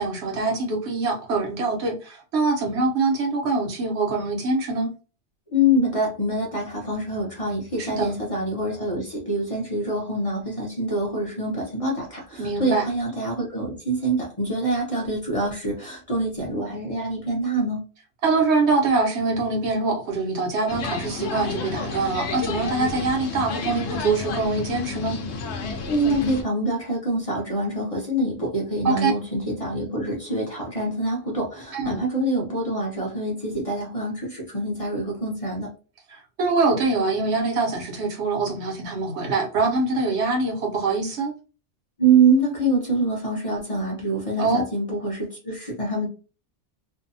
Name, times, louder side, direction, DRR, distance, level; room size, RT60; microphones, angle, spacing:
voice 1, 0.0-4.9 7.8-8.2 12.4-12.9 18.2-25.2 28.8-29.1 31.7-32.0 36.1-41.3 44.4-44.6, right 3 dB, 65° right, 1.0 m, -24 dB
voice 2, 5.5-17.9 25.9-35.7 42.0-46.1, right 2 dB, 35° left, 0.7 m, -25 dB
sound 1, 20.7-26.4, left 4 dB, 70° left, 0.8 m, -31 dB
2.6 x 2.1 x 2.6 m
omnidirectional pair, 1.3 m